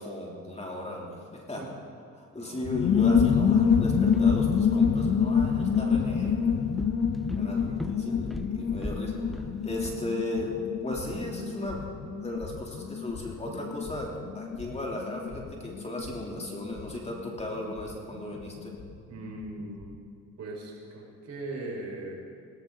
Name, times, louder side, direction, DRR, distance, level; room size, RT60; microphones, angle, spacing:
voice 1, 0.0-1.6 2.2-6.5 7.4-10.5 10.8-11.8 12.2-18.7, left 1 dB, 20° left, -2 dB, 3.4 m, -36 dB
voice 2, 2.4-3.2 7.4-7.8 19.1-19.9 20.4-22.1, right 2 dB, 60° right, -2 dB, 5.1 m, -40 dB
sound 1, 2.6-18.9 19.2-19.3 19.5-19.9, left 6 dB, 60° left, 1.1 m, -27 dB
Walk footsteps, 3.9-10.0, equal, ahead, 0.4 m, -42 dB
19.0 x 18.0 x 4.0 m, 2.4 s
cardioid pair, 90°, 30 cm